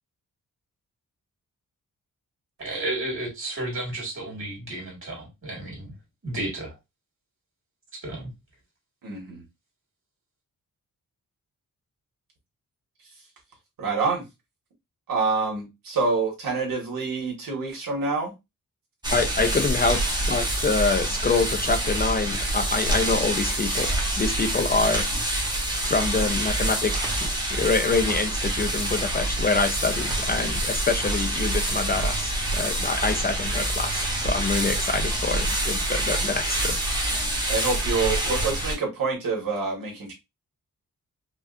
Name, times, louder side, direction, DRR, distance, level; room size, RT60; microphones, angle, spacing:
voice 1, 2.6-5.9 6.2-6.8 8.0-8.3, right 1 dB, 40° right, 2.1 m, -32 dB
voice 2, 9.0-9.4 13.8-14.2 15.1-18.3 19.4-19.5 37.5-40.1, right 4 dB, 85° right, 1.7 m, -27 dB
sound 1, 19.0-38.8, right 1 dB, 15° right, 1.0 m, -26 dB
voice 3, 19.1-20.0 20.3-25.1 25.9-26.9 27.2-37.2, left 4 dB, 30° left, 0.4 m, -26 dB
4.9 x 2.4 x 2.5 m
wide cardioid pair, 155°, 33 cm